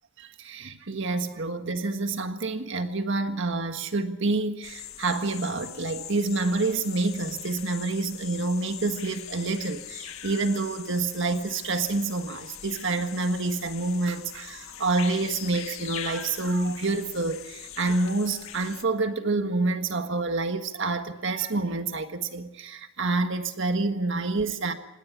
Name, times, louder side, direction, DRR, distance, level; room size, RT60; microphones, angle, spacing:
voice 1, 0.2-24.7, right 3 dB, 65° right, 1.6 m, -28 dB
sound 1, 4.6-18.8, left 10 dB, 85° left, 1.6 m, -41 dB
26.5 x 20.0 x 6.1 m
head